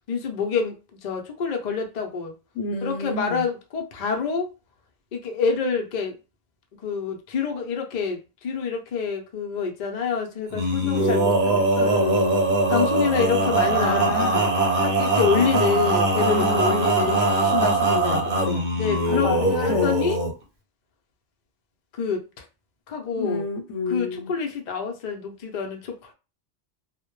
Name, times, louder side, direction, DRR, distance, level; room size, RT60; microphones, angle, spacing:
voice 1, 0.1-0.7 1.0-2.3 2.8-4.5 5.1-6.2 6.8-12.0 12.7-14.5 14.8-17.6 18.8-20.2 22.0-22.4 22.9-23.4 23.9-26.1, left 5 dB, 50° left, 0.5 m, -27 dB
voice 2, 2.5-3.4 10.8-12.7 13.7-14.5 16.2-18.7 19.1-20.0 23.2-24.3, left 3 dB, 85° left, 0.9 m, -29 dB
Male singing, 10.5-20.3, right 2 dB, 45° right, 0.8 m, -22 dB
2.1 x 2.1 x 2.9 m
omnidirectional pair, 1.2 m